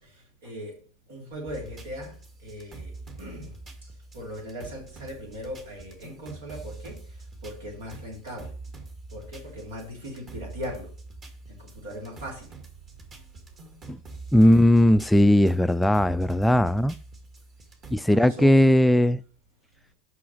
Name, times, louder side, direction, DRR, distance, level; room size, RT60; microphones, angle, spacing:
voice 1, 0.4-0.7 1.1-3.5 3.8-3.9 4.1-7.0 7.4-8.5 9.1-10.9 11.6-12.5 18.1-18.7, equal, 80° right, 3.3 m, -39 dB
sound 1, 1.5-18.0, right 3 dB, 35° right, 2.0 m, -44 dB
voice 2, 14.3-16.9 17.9-19.2, left 1 dB, 5° left, 0.3 m, -18 dB
6.0 x 5.7 x 6.4 m
hypercardioid pair, 95°, 0 cm